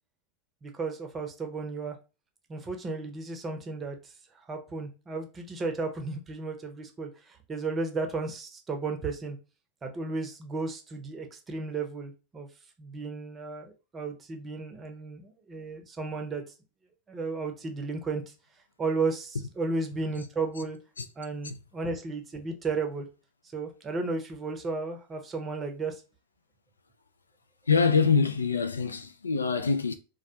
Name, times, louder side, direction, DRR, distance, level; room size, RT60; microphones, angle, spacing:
voice 1, 0.6-2.0 2.5-4.1 4.5-9.4 9.8-12.5 12.8-16.4 17.1-18.2 18.8-20.8 21.2-23.1 23.5-26.0, right 3 dB, 25° right, 0.6 m, -34 dB
voice 2, 27.7-29.9, left 5 dB, 80° left, 0.3 m, -25 dB
2.3 x 2.1 x 2.7 m
figure-of-eight pair, 85°, 0 cm